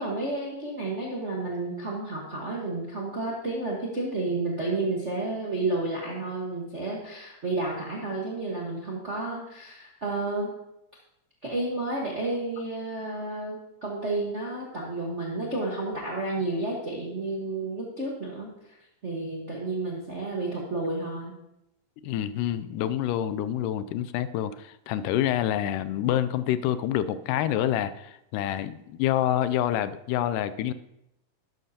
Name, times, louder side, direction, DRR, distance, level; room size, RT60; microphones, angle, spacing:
voice 1, 0.0-10.5 11.4-18.5 19.0-21.3, right 2 dB, 50° right, -3 dB, 0.8 m, -31 dB
voice 2, 22.0-30.7, left 11 dB, 90° left, 13 dB, 2.1 m, -27 dB
11.5 x 11.0 x 2.8 m, 0.85 s
omnidirectional pair, 3.7 m